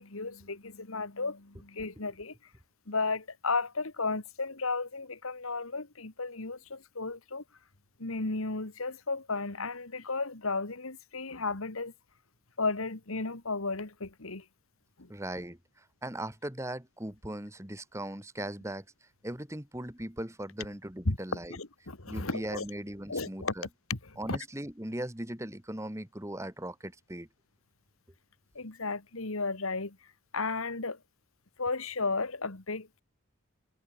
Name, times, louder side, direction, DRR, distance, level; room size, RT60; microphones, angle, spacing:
voice 1, 0.0-2.3 2.9-7.4 8.0-11.9 12.6-14.4 15.0-15.1 21.1-21.2 21.5-22.6 23.1-23.5 23.9-24.0 24.3-24.4 28.6-30.0 30.3-31.0 31.6-33.0, left 3 dB, 80° left, 2.1 m, -34 dB
voice 2, 15.1-18.9 19.2-21.6 22.1-23.7 24.2-27.3, right 1 dB, 15° right, 1.9 m, -39 dB
head